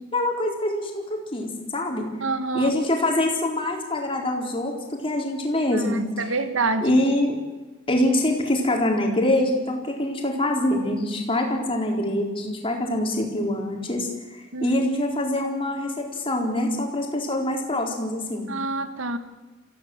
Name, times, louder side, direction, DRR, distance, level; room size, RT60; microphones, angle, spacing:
voice 1, 0.1-2.1 2.5-6.4 6.8-7.4 7.9-18.5, left 1 dB, 25° left, 4.0 m, -25 dB
voice 2, 2.2-2.7 5.7-7.0 14.5-14.7 18.5-19.2, right 3 dB, 80° right, 1.6 m, -27 dB
28.0 x 15.5 x 7.9 m
head